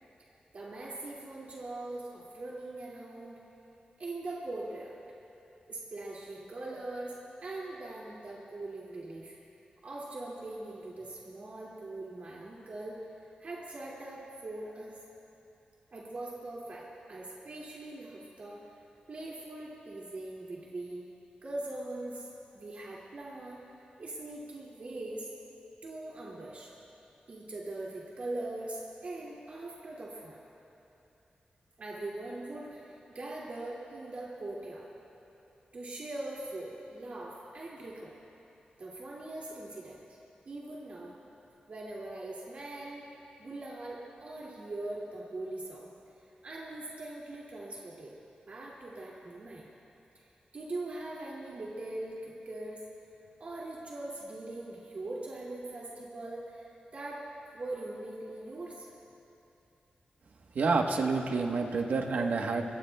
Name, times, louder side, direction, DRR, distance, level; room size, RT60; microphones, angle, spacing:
voice 1, 0.5-3.4 4.0-4.9 5.7-7.1 7.4-9.4 9.8-13.0 13.4-15.0 15.9-18.6 19.1-21.1 21.4-22.3 22.5-23.6 24.0-25.3 25.8-26.7 27.3-30.4 31.8-34.9 35.7-38.2 38.8-40.0 40.5-41.2 41.7-43.1 43.4-45.9 46.4-48.1 48.5-49.7 50.5-52.8 53.4-56.7 56.9-57.2 57.5-58.9, right 2 dB, 55° right, -5 dB, 2.3 m, -41 dB
voice 2, 60.5-62.6, right 4 dB, 75° right, 2 dB, 1.1 m, -28 dB
26.5 x 22.0 x 2.3 m, 2.9 s
wide cardioid pair, 140°, 3 cm